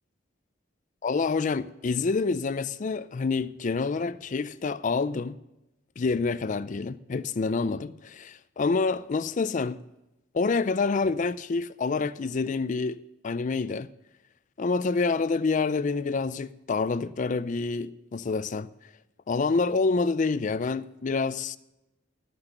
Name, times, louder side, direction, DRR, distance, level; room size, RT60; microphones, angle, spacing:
voice 1, 1.0-5.4 6.0-9.8 10.3-13.9 14.6-18.7 19.3-21.6, left 4 dB, 40° left, 0.4 m, -27 dB
13.5 x 5.9 x 6.6 m
head